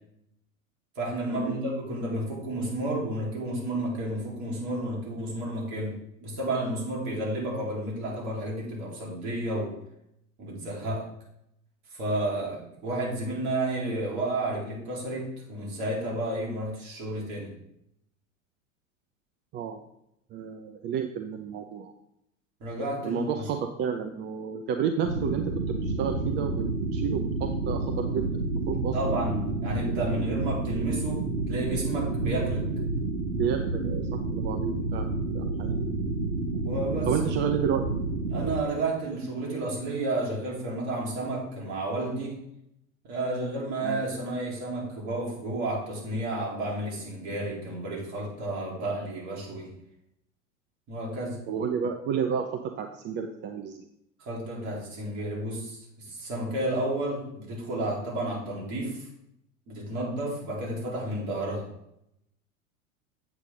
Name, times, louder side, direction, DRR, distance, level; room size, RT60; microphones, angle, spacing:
voice 1, 1.0-9.8 10.4-11.1 11.9-17.5 22.6-23.3 28.9-32.6 36.7-37.1 38.3-42.4 43.0-49.7 50.9-51.4 54.2-59.1 59.7-61.7, right 1 dB, 45° right, -3 dB, 3.7 m, -31 dB
voice 2, 20.3-21.9 23.0-26.7 26.9-29.3 32.2-32.5 33.3-35.1 35.3-35.8 37.1-37.9 43.8-44.0 51.5-53.9, right 7 dB, 25° right, 6 dB, 0.6 m, -31 dB
sound 1, 25.0-38.6, right 3 dB, 85° right, 1.2 m, -30 dB
8.2 x 8.1 x 3.7 m, 0.79 s
figure-of-eight pair, 85°, 41 cm